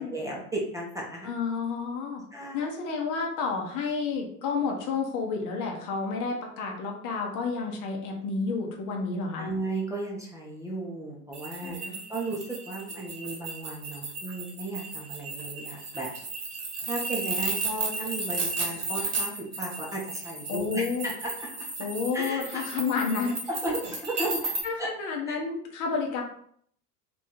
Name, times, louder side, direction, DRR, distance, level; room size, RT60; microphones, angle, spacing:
voice 1, 0.0-1.3 2.3-2.7 9.4-11.8 12.1-16.1 16.8-21.3 22.1-22.8 23.5-24.5 24.8-24.9 25.3-25.4, right 1 dB, 5° right, -3 dB, 0.9 m, -35 dB
voice 2, 1.2-2.2 2.5-9.5 11.6-12.0 20.5-21.1 21.8-23.4 24.2-24.3 24.6-26.2, left 4 dB, 40° left, 1 dB, 1.0 m, -30 dB
sound 1, 11.3-24.6, right 3 dB, 30° right, 1.3 m, -34 dB
3.5 x 3.1 x 4.3 m, 0.64 s
figure-of-eight pair, 80°, 48 cm